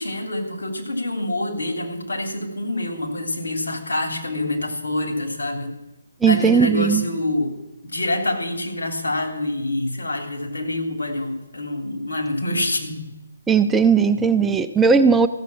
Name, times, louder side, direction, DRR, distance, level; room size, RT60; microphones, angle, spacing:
voice 1, 0.0-5.7 6.2-7.5 7.8-13.1, left 1 dB, 80° left, 3 dB, 3.3 m, -26 dB
voice 2, 6.2-7.0 13.5-15.3, right 5 dB, 5° right, 8 dB, 0.5 m, -17 dB
15.0 x 7.4 x 7.1 m, 0.94 s
hypercardioid pair, 155°, 0 cm